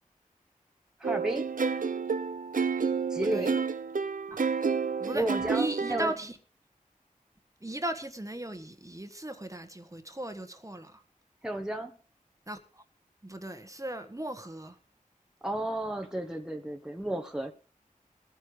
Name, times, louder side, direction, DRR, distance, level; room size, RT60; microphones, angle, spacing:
voice 1, 1.0-1.5 3.1-3.6 5.1-6.1 11.4-11.9 15.4-17.5, right 1 dB, 5° right, 1.3 m, -32 dB
sound 1, 1.0-6.1, right 5 dB, 70° right, 0.7 m, -30 dB
voice 2, 5.5-6.4 7.6-11.0 12.5-12.8 13.2-14.8, right 1 dB, 20° right, 1.4 m, -37 dB
21.5 x 9.9 x 3.3 m
wide cardioid pair, 60°, 15 cm